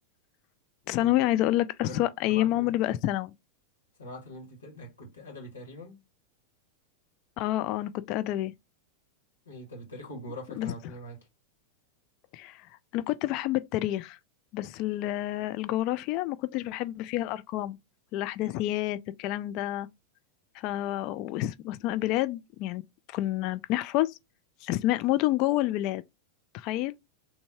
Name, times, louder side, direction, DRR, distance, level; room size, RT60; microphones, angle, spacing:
voice 1, 0.9-3.3 7.4-8.5 10.6-10.7 12.3-12.6 12.9-14.2 14.5-17.8 18.1-19.9 20.5-22.8 23.1-24.2 24.6-26.0 26.5-26.9, left 15 dB, 40° left, 0.4 m, -28 dB
voice 2, 1.8-3.0 4.0-6.0 9.5-11.2, left 1 dB, 75° left, 1.9 m, -43 dB
3.4 x 2.7 x 4.3 m
figure-of-eight pair, 90°, 0 cm